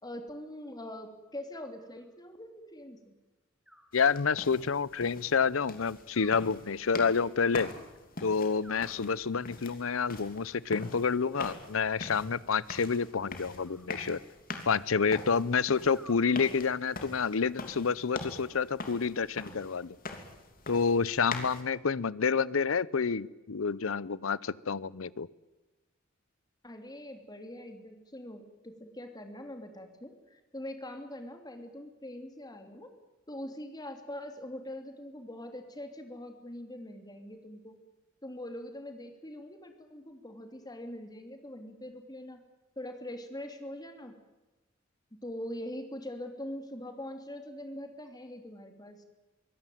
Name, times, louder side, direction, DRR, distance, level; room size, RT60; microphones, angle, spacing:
voice 1, 0.0-3.1 26.6-32.9 33.3-37.8 38.2-42.4 42.8-44.2 45.1-49.0, left 1 dB, 20° left, 6 dB, 2.9 m, -43 dB
Animal, 1.5-2.4 3.6-4.7 6.1-7.2 8.6-9.6 11.4-12.3 13.6-14.7 15.9-16.9 18.2-19.1, equal, ahead, 2.4 m, -59 dB
voice 2, 3.9-7.7 8.2-14.2 14.7-20.0 20.7-25.3, left 5 dB, 85° left, 21 dB, 0.7 m, -29 dB
sound 1, 3.9-21.6, left 3 dB, 45° left, 3.1 m, -44 dB
24.0 x 17.5 x 9.2 m, 1.1 s
head